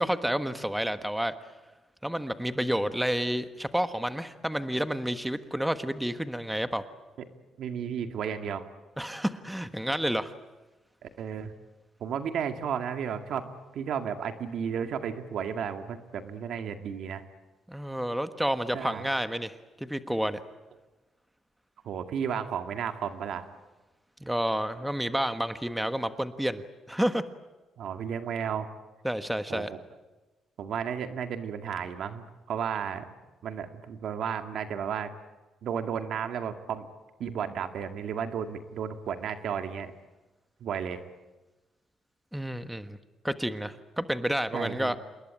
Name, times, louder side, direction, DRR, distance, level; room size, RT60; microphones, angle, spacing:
voice 1, 0.0-1.3 2.0-6.8 9.0-10.3 17.7-20.4 24.2-26.6 26.9-27.2 29.0-29.7 42.3-43.0 43.2-45.0, equal, 5° right, 10 dB, 1.3 m, -30 dB
voice 2, 7.6-8.7 11.0-11.5 12.0-13.5 13.7-17.2 18.7-19.1 21.8-23.5 27.8-28.7 29.5-29.8 30.6-33.1 33.4-35.1 35.6-36.9 37.2-39.9 40.6-41.0 44.5-45.0, right 7 dB, 70° right, 7 dB, 2.1 m, -33 dB
27.5 x 20.5 x 9.0 m, 1.1 s
cardioid pair, 90°, 0 cm